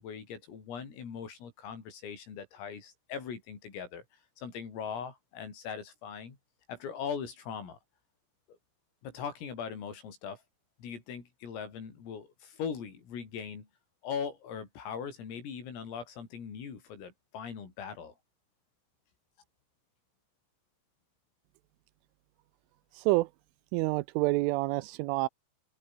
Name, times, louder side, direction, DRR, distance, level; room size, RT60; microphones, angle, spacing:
voice 1, 0.0-4.0 4.4-6.4 6.7-7.8 8.5-8.6 9.0-10.4 10.8-13.7 14.0-18.2, left 7 dB, 85° left, 8.0 m, -40 dB
voice 2, 23.7-25.3, right 21 dB, 85° right, 3.0 m, -27 dB
open air
omnidirectional pair, 5.8 m